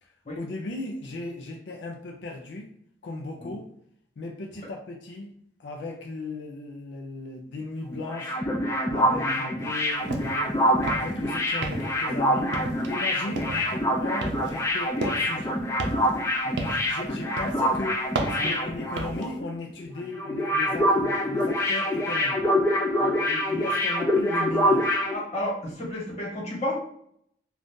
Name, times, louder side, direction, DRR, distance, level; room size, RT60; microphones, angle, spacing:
voice 1, 0.0-2.7 3.0-3.7 4.2-5.3 5.6-8.4 8.9-12.6 12.9-15.6 16.7-22.4 23.3-25.0, left 2 dB, 90° left, 2 dB, 0.4 m, -37 dB
sound 1, 7.9-19.5 19.7-19.9 20.2-25.1, equal, 15° left, 0.3 m, -25 dB
voice 2, 9.0-9.5 16.4-16.5 18.4-18.5 23.0-23.2 25.1-26.7, left 1 dB, 40° left, -4 dB, 1.3 m, -32 dB
sound 2, 10.1-10.4 10.7-11.2 11.6-12.1 12.5-13.0 13.4-13.7 14.2-15.4 15.8-17.0 17.4-17.7 18.1-19.3, right 2 dB, 90° right, 0.5 m, -33 dB
2.6 x 2.4 x 3.5 m, 0.66 s
head